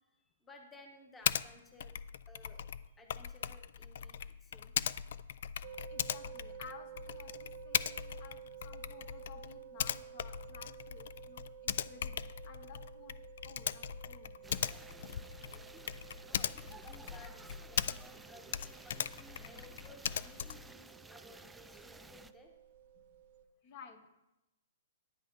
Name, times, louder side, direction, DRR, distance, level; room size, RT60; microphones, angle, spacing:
voice 1, 0.1-1.9 2.3-4.7 15.5-16.6 17.0-19.0 19.4-22.5, left 2 dB, 10° left, 3 dB, 1.2 m, -58 dB
Typing, 1.2-1.5 1.8-18.2 18.5-20.7, left 9 dB, 60° left, 0.4 m, -39 dB
sound 1, 5.6-23.4, right 10 dB, 50° right, 0.7 m, -53 dB
voice 2, 5.9-13.1 13.4-14.5 15.0-15.3 23.6-24.2, left 6 dB, 40° left, 7 dB, 1.2 m, -55 dB
sound 2, 14.4-22.3, right 3 dB, 5° right, 0.4 m, -55 dB
10.5 x 10.5 x 3.9 m, 0.93 s
hypercardioid pair, 155°, 0 cm